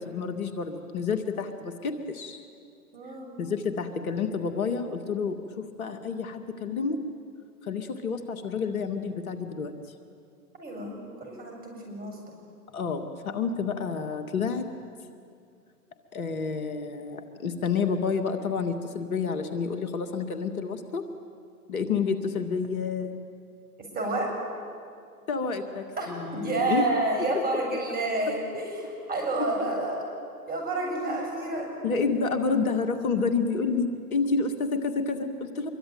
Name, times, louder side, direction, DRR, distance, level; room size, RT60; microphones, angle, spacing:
voice 1, 0.0-2.4 3.4-7.0 7.6-9.7 12.7-14.7 16.1-21.1 21.7-23.2 25.3-26.9 27.2-27.3 27.5-27.6 31.8-35.7, left 5 dB, 65° left, 7 dB, 2.3 m, -29 dB
voice 2, 2.9-3.3 10.6-12.4 23.8-24.3 26.0-30.0 30.5-31.8, right 2 dB, 20° right, 1 dB, 7.6 m, -30 dB
26.0 x 23.5 x 9.6 m, 2.3 s
figure-of-eight pair, 110°, 46 cm